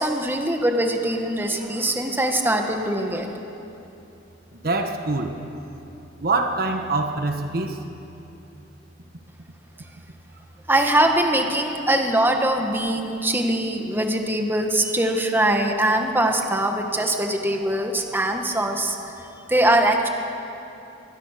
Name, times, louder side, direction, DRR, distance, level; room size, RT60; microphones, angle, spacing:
voice 1, 0.0-3.3 10.7-19.0 19.5-20.1, right 1 dB, 10° right, 3 dB, 1.7 m, -22 dB
voice 2, 4.5-5.3 6.2-7.8, right 3 dB, 55° right, 5 dB, 1.4 m, -24 dB
25.0 x 20.0 x 6.8 m, 2.8 s
head